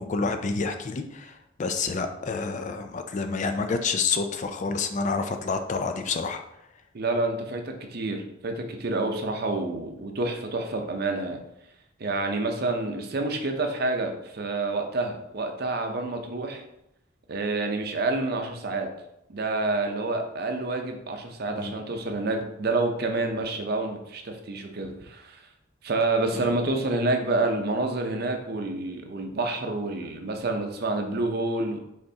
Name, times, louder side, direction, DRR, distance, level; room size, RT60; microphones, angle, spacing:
voice 1, 0.0-1.3 1.6-6.4 21.5-21.7 26.3-26.5, left 4 dB, 40° left, 7 dB, 0.4 m, -28 dB
voice 2, 6.9-11.4 12.0-16.6 17.3-18.9 19.3-25.4 25.8-31.8, right 2 dB, 55° right, 4 dB, 0.6 m, -28 dB
5.3 x 3.6 x 2.8 m, 0.81 s
head